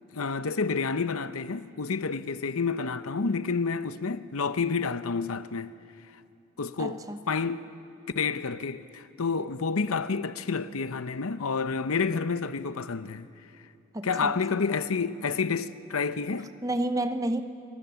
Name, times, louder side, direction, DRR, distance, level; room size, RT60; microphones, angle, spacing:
voice 1, 0.1-5.7 6.6-7.7 8.1-13.3 14.0-16.5, left 4 dB, 85° left, 0.8 m, -29 dB
voice 2, 6.8-7.2 13.9-14.6 16.6-17.4, right 1 dB, 15° right, 0.8 m, -30 dB
26.5 x 23.0 x 7.0 m
head